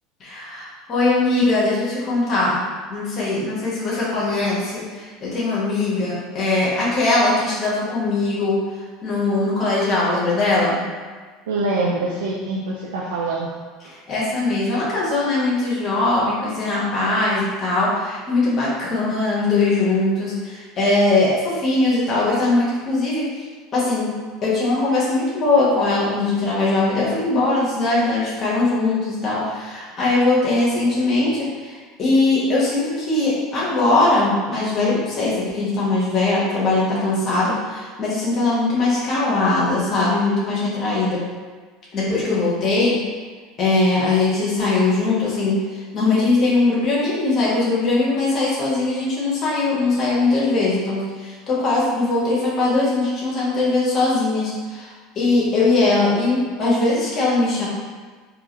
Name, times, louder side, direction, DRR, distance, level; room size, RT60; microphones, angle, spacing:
voice 1, 0.2-2.6 2.9-8.6 9.0-10.8 14.1-23.2 23.7-24.1 24.4-41.2 41.9-43.0 43.6-57.7, left 2 dB, 40° left, -7 dB, 1.4 m, -20 dB
voice 2, 11.5-13.5 13.8-13.9, right 2 dB, 75° right, -5 dB, 0.4 m, -24 dB
3.7 x 2.9 x 3.0 m, 1.5 s
hypercardioid pair, 75°, 0 cm